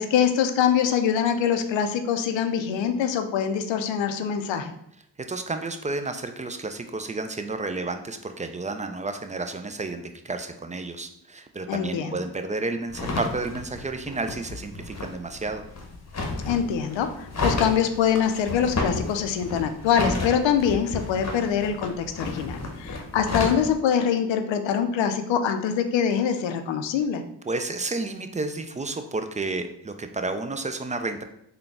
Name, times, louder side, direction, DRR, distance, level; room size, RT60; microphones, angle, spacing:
voice 1, 0.0-4.8 11.7-12.2 16.5-27.2, left 8 dB, 80° left, 7 dB, 0.5 m, -24 dB
voice 2, 5.3-15.6 27.5-31.2, right 3 dB, 20° right, 7 dB, 0.3 m, -31 dB
sound 1, 12.9-23.7, left 2 dB, 35° left, 0.8 m, -32 dB
3.8 x 2.2 x 3.5 m, 0.73 s
supercardioid pair, 45°, 45 cm